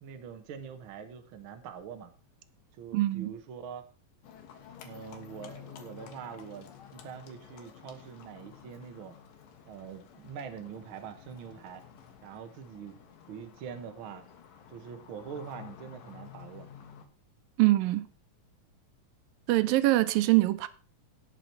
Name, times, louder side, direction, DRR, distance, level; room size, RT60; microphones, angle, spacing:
voice 1, 0.0-2.1 2.7-3.9 4.8-9.2 9.7-11.8 12.2-13.0 13.3-14.2 14.7-16.7, right 7 dB, 50° right, 1.6 m, -44 dB
voice 2, 2.9-3.3 17.6-18.1 19.5-20.7, right 17 dB, 90° right, 2.5 m, -24 dB
Livestock farm animals working animals, 4.2-17.1, left 9 dB, 80° left, 3.2 m, -51 dB
17.5 x 6.3 x 4.6 m
omnidirectional pair, 4.0 m